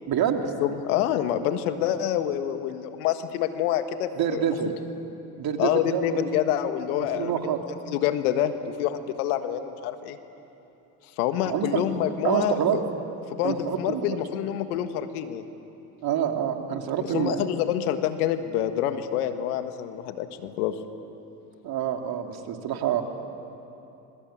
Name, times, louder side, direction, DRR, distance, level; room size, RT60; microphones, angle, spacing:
voice 1, 0.1-0.4 4.1-4.7 5.4-6.2 7.0-7.6 11.5-11.8 12.2-12.8 13.4-14.2 16.0-17.5 21.6-23.0, right 9 dB, 55° right, 4 dB, 2.9 m, -27 dB
voice 2, 0.6-4.4 5.6-7.5 7.9-10.2 11.2-12.6 13.3-15.4 17.0-20.8, left 11 dB, 80° left, 9 dB, 1.7 m, -27 dB
26.5 x 23.0 x 8.8 m, 2.9 s
hypercardioid pair, 75°, 44 cm